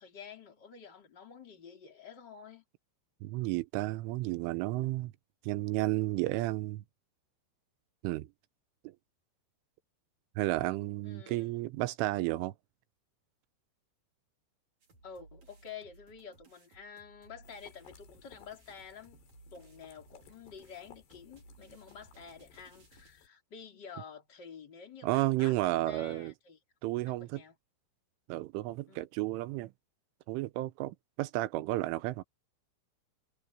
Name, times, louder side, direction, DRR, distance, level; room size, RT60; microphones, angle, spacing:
voice 1, 0.0-2.6 11.0-11.5 15.0-19.2 19.5-25.6 25.9-26.6 27.1-27.6 28.9-29.1, left 6 dB, 25° left, 4.0 m, -49 dB
voice 2, 3.2-5.1 5.4-6.8 8.0-8.3 8.8-8.9 10.4-12.5 25.0-26.3 26.8-27.4 28.3-29.7 30.3-32.2, right 18 dB, 85° right, 3.3 m, -32 dB
sound 1, 14.8-23.1, right 3 dB, 35° right, 5.0 m, -61 dB
sound 2, 17.4-23.3, left 8 dB, 65° left, 4.6 m, -60 dB
omnidirectional pair, 5.6 m